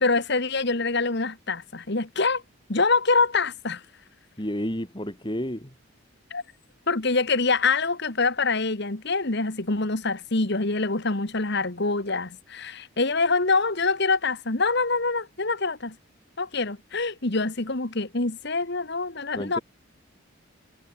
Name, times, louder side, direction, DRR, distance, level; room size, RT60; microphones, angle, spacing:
voice 1, 0.0-2.4 2.7-3.8 6.3-6.4 6.9-16.0 16.4-19.6, left 3 dB, 50° left, 1.8 m, -25 dB
voice 2, 4.4-5.7 19.3-19.6, equal, 20° left, 3.6 m, -31 dB
head